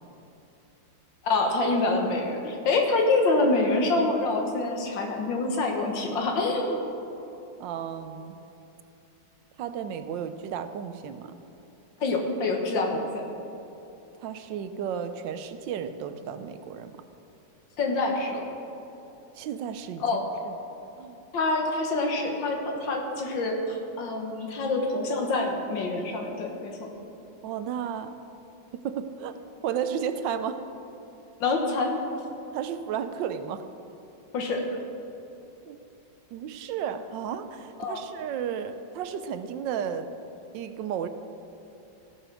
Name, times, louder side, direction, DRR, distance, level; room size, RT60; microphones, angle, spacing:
voice 1, 1.2-6.8 12.0-13.2 17.8-18.5 20.0-20.3 21.3-26.8 31.4-32.0 34.3-34.6 37.8-38.0, left 2 dB, 80° left, 2 dB, 2.0 m, -26 dB
voice 2, 7.6-8.4 9.6-11.3 14.2-16.9 19.3-20.5 21.0-21.2 27.4-28.2 28.7-29.4 29.6-30.6 32.5-33.7 35.6-35.8 36.3-40.1 40.5-41.1, right 8 dB, 80° right, 10 dB, 1.3 m, -33 dB
16.0 x 6.0 x 6.1 m, 3.0 s
omnidirectional pair, 2.0 m